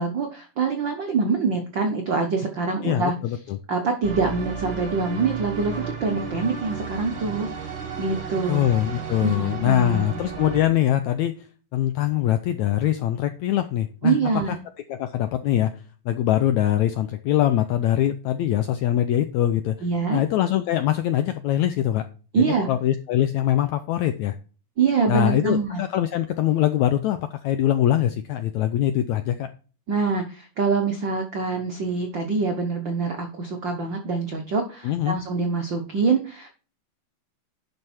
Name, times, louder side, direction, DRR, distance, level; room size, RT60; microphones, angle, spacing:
voice 1, 0.0-3.1 3.7-7.5 8.0-8.7 9.2-10.2 14.0-14.6 19.8-20.2 22.3-22.7 24.8-25.8 29.9-36.5, right 4 dB, 80° right, 4 dB, 1.0 m, -25 dB
voice 2, 2.8-3.6 8.5-11.3 11.7-14.2 14.5-14.6 14.9-15.7 16.0-19.7 20.1-22.1 22.3-24.3 25.1-29.5 34.8-35.1, left 12 dB, 85° left, 10 dB, 1.6 m, -23 dB
sound 1, 4.0-10.6, right 6 dB, 40° right, 2.3 m, -33 dB
11.0 x 5.5 x 4.4 m, 0.37 s
omnidirectional pair, 4.1 m